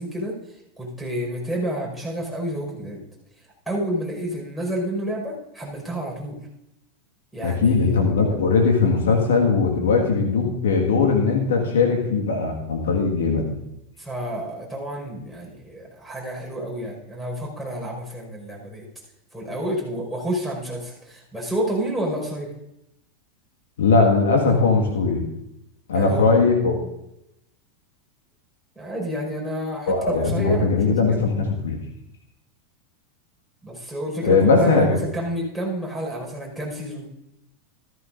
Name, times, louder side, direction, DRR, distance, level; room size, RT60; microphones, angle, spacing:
voice 1, 0.0-3.0 3.7-6.4 7.3-8.0 14.0-18.9 19.3-22.5 25.9-26.4 28.8-30.8 31.1-31.2 33.6-37.0, right 1 dB, ahead, -1 dB, 5.4 m, -29 dB
voice 2, 7.4-13.6 23.8-25.2 25.9-26.8 29.9-31.8 34.2-35.0, left 4 dB, 75° left, 1 dB, 1.8 m, -19 dB
14.0 x 13.5 x 2.6 m, 0.84 s
hypercardioid pair, 90°, 0 cm